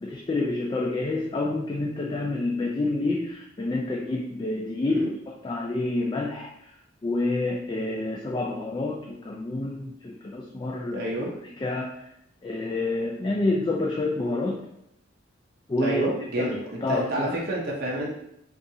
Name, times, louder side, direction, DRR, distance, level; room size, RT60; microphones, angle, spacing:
voice 1, 0.0-6.7 7.0-11.2 11.6-12.1 12.4-14.6 15.7-16.1 16.4-16.5 16.8-17.4, left 2 dB, 25° left, -1 dB, 0.3 m, -28 dB
voice 2, 10.9-11.3 15.8-18.1, right 1 dB, 50° right, -3 dB, 0.6 m, -29 dB
3.9 x 2.4 x 2.7 m, 0.79 s
head